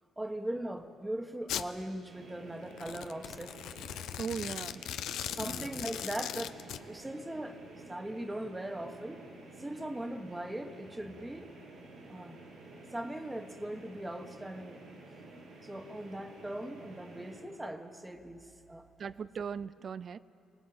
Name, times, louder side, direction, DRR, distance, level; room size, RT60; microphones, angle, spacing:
voice 1, 0.2-3.6 5.2-6.5 6.9-9.2 9.6-11.5 12.1-12.5 12.9-14.8 15.6-19.1, right 1 dB, 10° right, 7 dB, 1.4 m, -40 dB
Domestic sounds home sounds, 1.5-1.7 2.7-6.8, left 11 dB, 80° left, 0.6 m, -39 dB
sound 1, 2.1-17.4, right 2 dB, 80° right, 5.3 m, -51 dB
voice 2, 4.2-4.8 5.4-5.7 19.0-20.2, right 6 dB, 50° right, 17 dB, 0.5 m, -38 dB
24.5 x 18.5 x 7.9 m, 2.4 s
cardioid pair, 90°, 0 cm